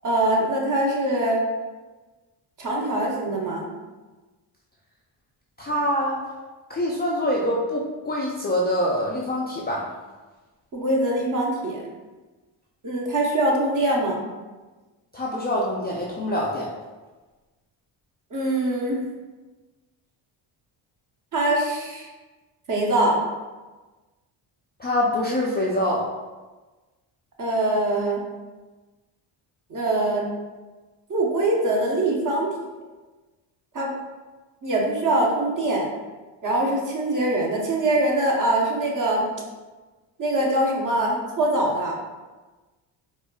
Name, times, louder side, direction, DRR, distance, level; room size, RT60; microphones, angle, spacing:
voice 1, 0.0-1.4 2.6-3.7 10.7-11.9 12.8-14.2 18.3-19.0 21.3-22.1 22.7-23.2 27.4-28.2 29.7-30.3 31.1-32.5 33.7-33.9 34.6-35.9 36.4-39.3 40.2-42.0, right 1 dB, 40° right, -2 dB, 0.9 m, -23 dB
voice 2, 5.6-6.2 6.7-9.9 15.1-16.7 24.8-26.1, left 1 dB, 25° left, -4 dB, 0.3 m, -25 dB
4.2 x 2.3 x 2.3 m, 1.2 s
cardioid pair, 85°, 49 cm